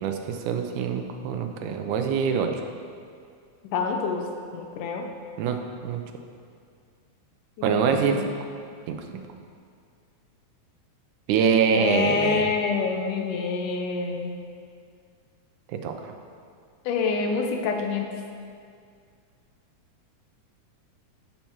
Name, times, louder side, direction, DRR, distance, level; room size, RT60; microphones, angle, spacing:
voice 1, 0.0-2.6 5.4-5.6 5.8-6.0 7.6-8.3 8.9-9.3 11.3-12.5 15.7-16.1, right 6 dB, 80° right, 5 dB, 2.2 m, -25 dB
voice 2, 3.7-4.2 4.5-5.0 7.6-8.3 11.7-14.3 16.9-18.1, left 5 dB, 80° left, 3 dB, 2.5 m, -27 dB
14.5 x 5.8 x 4.6 m, 2.2 s
omnidirectional pair, 3.6 m